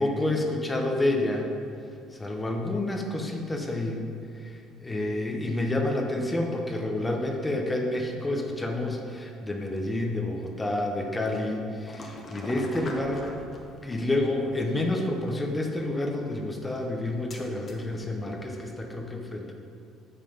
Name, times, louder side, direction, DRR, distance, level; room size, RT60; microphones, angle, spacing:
voice 1, 0.0-1.5 2.1-4.1 4.4-13.3 13.8-19.5, left 1 dB, 15° left, 1 dB, 0.8 m, -29 dB
sound 1, 11.9-18.9, left 2 dB, 35° left, 1.1 m, -45 dB
7.3 x 5.7 x 5.0 m, 2.5 s
cardioid pair, 120°, 0 cm